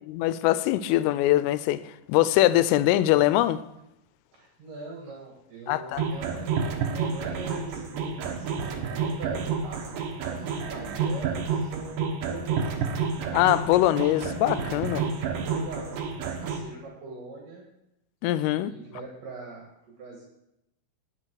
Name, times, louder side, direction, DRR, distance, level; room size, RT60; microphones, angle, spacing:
voice 1, 0.1-1.8 2.1-3.6 5.7-6.0 13.3-15.0 18.2-18.7, left 15 dB, 90° left, 3.1 m, -22 dB
voice 2, 4.3-12.8 14.8-17.7 18.6-19.7 20.0-20.2, right 3 dB, 55° right, 2.6 m, -42 dB
sound 1, 6.0-16.6, right 6 dB, 80° right, 1.9 m, -29 dB
18.5 x 6.8 x 4.7 m
omnidirectional pair, 5.7 m